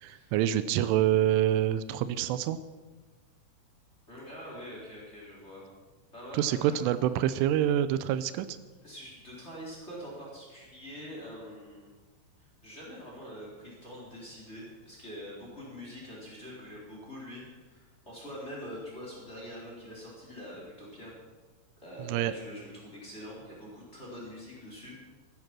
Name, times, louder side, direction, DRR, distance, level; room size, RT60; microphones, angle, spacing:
voice 1, 0.0-2.6 6.3-8.6 22.0-22.3, right 11 dB, 85° right, 13 dB, 3.2 m, -26 dB
voice 2, 4.1-5.6 6.1-6.8 8.8-11.9 12.4-21.1 21.8-24.9, equal, 15° left, -4 dB, 3.7 m, -44 dB
15.0 x 12.0 x 6.1 m, 1.2 s
omnidirectional pair, 5.5 m